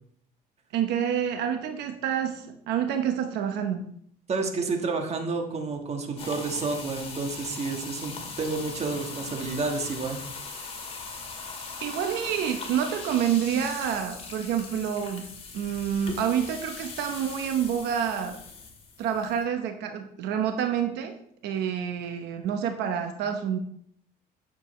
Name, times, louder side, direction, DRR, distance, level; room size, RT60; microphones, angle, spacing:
voice 1, 0.7-3.9 11.8-15.3 15.5-18.4 19.0-21.2 21.4-23.6, right 8 dB, 85° right, 5 dB, 0.9 m, -28 dB
voice 2, 4.3-10.2, right 4 dB, 40° right, 3 dB, 1.5 m, -30 dB
sound 1, 6.2-19.4, left 4 dB, 35° left, 2.2 m, -40 dB
9.3 x 7.0 x 3.2 m, 0.67 s
cardioid pair, 110°, 17 cm